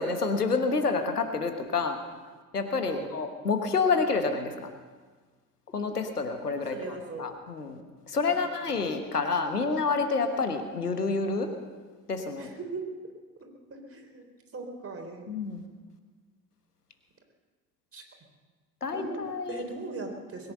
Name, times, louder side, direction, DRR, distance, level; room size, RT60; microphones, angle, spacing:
voice 1, 0.0-2.0 2.5-4.7 5.7-7.8 8.1-11.5 12.1-12.5 15.3-15.7 18.8-19.6, left 4 dB, 90° left, 7 dB, 1.3 m, -28 dB
voice 2, 6.7-7.3 8.3-8.8 12.4-13.0 13.4-14.3 14.5-15.3 17.9-18.0 18.9-19.2 19.5-20.5, right 3 dB, 30° right, 3 dB, 3.8 m, -39 dB
21.5 x 10.0 x 6.7 m, 1.4 s
figure-of-eight pair, 55°, 45 cm